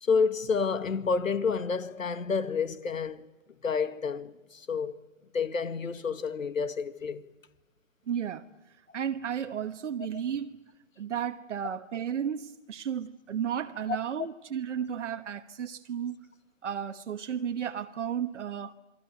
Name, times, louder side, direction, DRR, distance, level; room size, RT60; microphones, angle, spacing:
voice 1, 0.0-3.3 3.6-4.9 5.3-7.2, left 5 dB, 80° left, 2.0 m, -29 dB
voice 2, 8.1-8.5 8.9-10.6 11.0-16.3 16.6-18.7, right 8 dB, 65° right, 1.3 m, -33 dB
28.5 x 23.0 x 9.0 m
hypercardioid pair, 130°, 39 cm